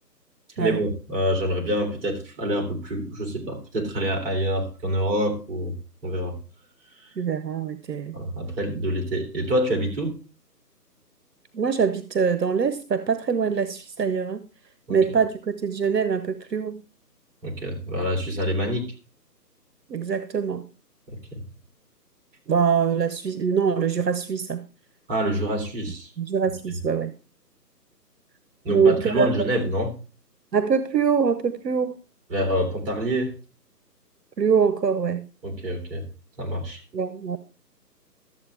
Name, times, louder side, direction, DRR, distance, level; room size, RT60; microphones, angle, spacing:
voice 1, 0.6-5.7 6.0-6.4 8.1-10.2 14.9-15.0 17.4-18.9 21.1-21.4 25.1-26.1 28.6-29.9 32.3-33.3 35.4-36.0 36.4-36.8, equal, 35° right, 3.0 m, -26 dB
voice 2, 7.2-8.2 11.5-14.5 14.9-16.8 19.9-20.6 22.5-24.6 26.2-27.1 28.7-29.5 30.5-32.0 34.4-35.2 36.9-37.4, right 6 dB, 80° right, 0.9 m, -23 dB
13.0 x 7.7 x 3.4 m
figure-of-eight pair, 150°, 50 cm